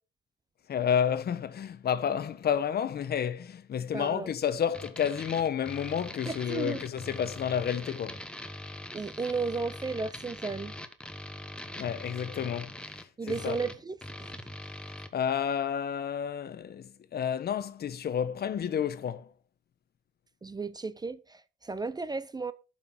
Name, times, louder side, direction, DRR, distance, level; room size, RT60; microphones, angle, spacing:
voice 1, 0.7-8.2 11.8-13.6 15.1-19.3, left 8 dB, 55° left, 0.9 m, -30 dB
voice 2, 3.9-4.3 6.3-6.8 8.9-10.7 13.2-14.3 20.4-22.5, right 4 dB, 20° right, 0.4 m, -34 dB
sound 1, 4.7-15.1, left 1 dB, 5° left, 1.0 m, -42 dB
11.5 x 5.9 x 4.1 m
cardioid pair, 90°, 20 cm